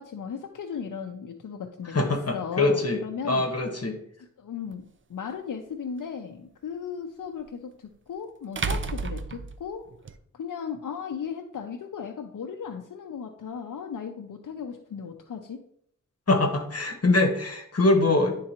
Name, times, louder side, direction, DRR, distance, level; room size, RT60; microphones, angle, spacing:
voice 1, 0.0-3.5 4.4-9.8 10.3-15.6, left 7 dB, 90° left, 4 dB, 0.5 m, -36 dB
voice 2, 1.9-3.0 3.2-4.0 16.3-18.4, left 2 dB, 50° left, 4 dB, 1.2 m, -23 dB
sound 1, 4.7-4.8 7.4-7.5 8.6-10.2, right 4 dB, 40° right, 0.4 m, -31 dB
10.5 x 3.8 x 2.9 m, 0.69 s
wide cardioid pair, 60°, 31 cm